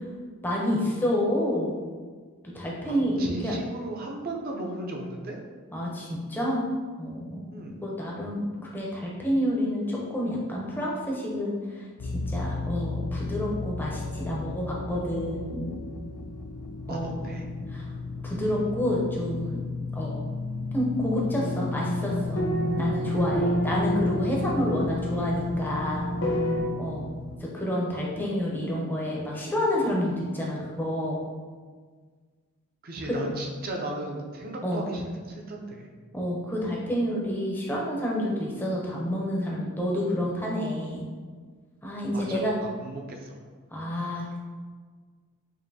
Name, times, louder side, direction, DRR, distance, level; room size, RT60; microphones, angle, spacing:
voice 1, 0.4-1.8 2.5-3.5 5.7-6.6 7.0-11.5 12.3-15.8 16.9-17.3 17.7-17.9 18.2-19.6 19.9-20.2 20.7-22.4 22.8-26.1 26.8-27.0 27.4-31.2 34.6-34.9 36.1-41.0 41.8-42.5 43.7-44.4, equal, 10° left, -4 dB, 0.6 m, -29 dB
voice 2, 2.9-5.4 7.5-7.7 16.9-17.5 32.8-35.9 42.1-43.4 43.9-44.1, right 2 dB, 40° right, 1 dB, 0.5 m, -36 dB
sound 1, 12.0-27.4, left 3 dB, 90° left, 0.4 m, -34 dB
sound 2, 21.4-26.6, equal, 60° left, 0.8 m, -29 dB
5.2 x 2.6 x 2.7 m, 1.5 s
head